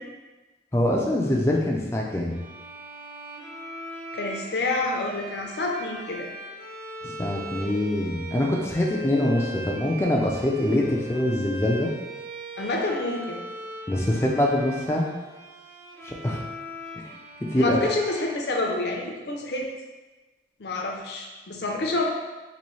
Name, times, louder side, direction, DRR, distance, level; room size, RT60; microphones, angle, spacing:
voice 1, 0.7-2.4 7.0-11.9 13.9-15.1 16.0-16.4 16.9-17.0 17.4-17.9, left 1 dB, 15° left, -2 dB, 0.3 m, -24 dB
sound 1, 2.3-19.1, right 1 dB, 40° right, 0.7 m, -40 dB
voice 2, 4.1-6.3 12.6-13.4 17.6-19.7 20.6-22.1, left 2 dB, 65° left, 0 dB, 0.5 m, -28 dB
4.1 x 2.6 x 3.1 m, 1.2 s
head